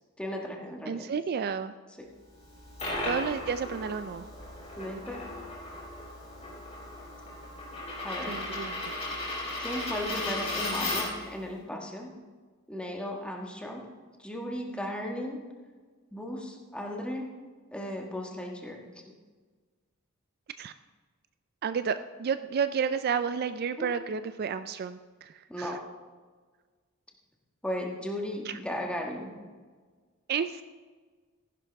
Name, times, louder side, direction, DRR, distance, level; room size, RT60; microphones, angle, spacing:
voice 1, 0.2-1.1 2.0-2.1 4.8-5.3 8.0-8.4 9.6-12.1 12.7-13.9 14.2-15.4 16.1-17.3 17.7-18.8 23.8-23.9 25.5-25.8 27.6-29.4, left 1 dB, 5° left, 1 dB, 1.5 m, -36 dB
voice 2, 0.9-1.7 3.1-4.3 8.3-9.0 20.6-20.7 21.6-25.8 28.4-28.6 30.3-30.6, right 6 dB, 50° right, 11 dB, 0.4 m, -31 dB
Coin (dropping), 2.4-11.3, left 2 dB, 30° left, 4.2 m, -36 dB
15.0 x 11.0 x 3.5 m, 1.5 s
head